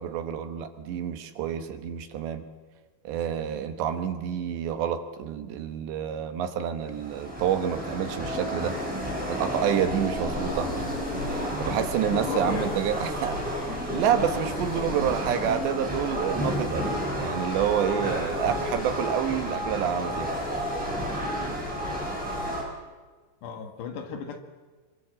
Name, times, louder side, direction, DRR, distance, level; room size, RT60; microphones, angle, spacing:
voice 1, 0.0-2.5 3.0-8.8 9.3-10.7 11.6-13.5 13.9-20.3, right 9 dB, 75° right, 8 dB, 3.4 m, -28 dB
sound 1, 6.8-22.6, equal, ahead, 7.4 m, -31 dB
voice 2, 12.1-12.8 23.4-24.4, left 6 dB, 65° left, 6 dB, 3.8 m, -34 dB
25.0 x 24.5 x 7.6 m, 1.4 s
omnidirectional pair, 5.4 m